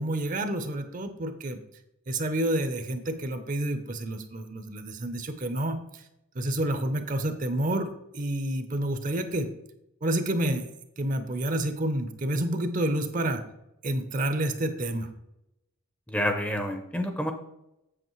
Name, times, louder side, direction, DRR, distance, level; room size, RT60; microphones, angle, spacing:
voice 1, 0.0-1.6 2.1-6.0 6.3-9.5 10.0-10.7 11.0-13.4 13.8-15.1, right 1 dB, 35° right, 9 dB, 0.6 m, -29 dB
voice 2, 16.1-17.3, equal, 5° left, 5 dB, 0.6 m, -28 dB
7.9 x 7.0 x 3.1 m, 0.85 s
head